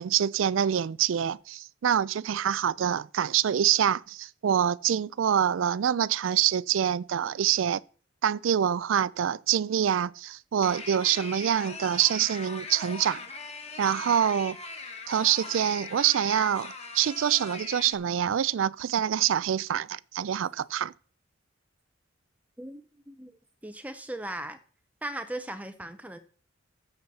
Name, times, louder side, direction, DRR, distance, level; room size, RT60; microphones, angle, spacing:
voice 1, 0.0-7.8 8.2-13.2 13.8-14.6 15.1-20.9, right 9 dB, 80° right, 0.4 m, -26 dB
sound 1, 10.6-17.9, left 4 dB, 35° left, 1.4 m, -40 dB
voice 2, 22.6-23.3 23.6-24.6 25.0-26.2, right 1 dB, 10° right, 0.6 m, -38 dB
13.5 x 8.1 x 4.1 m
head